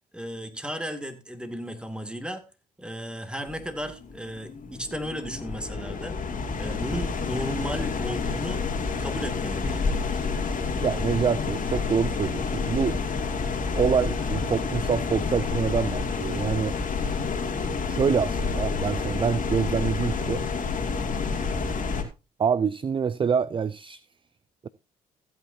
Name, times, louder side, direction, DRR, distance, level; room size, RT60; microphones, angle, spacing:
voice 1, 0.1-2.4 2.8-6.2 6.6-8.6 9.0-10.2, equal, 5° right, 2.4 m, -35 dB
sound 1, 3.5-22.0, left 4 dB, 50° left, 2.5 m, -29 dB
voice 2, 10.8-13.0 13.7-16.8 17.9-20.4 22.4-24.0 24.6-24.7, right 6 dB, 30° right, 0.5 m, -26 dB
15.5 x 8.7 x 2.8 m
hypercardioid pair, 55°, 18 cm